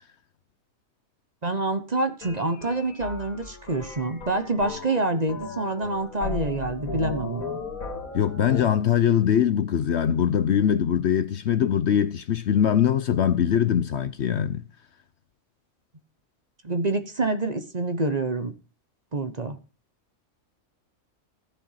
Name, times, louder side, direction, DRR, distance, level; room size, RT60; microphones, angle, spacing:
voice 1, 1.4-7.5 16.6-18.5 19.1-19.6, right 2 dB, 35° right, 1.1 m, -27 dB
sound 1, 2.2-8.6, left 3 dB, 85° left, 2.7 m, -36 dB
voice 2, 8.1-14.6, left 9 dB, 60° left, 0.9 m, -22 dB
14.5 x 6.9 x 5.7 m
omnidirectional pair, 1.4 m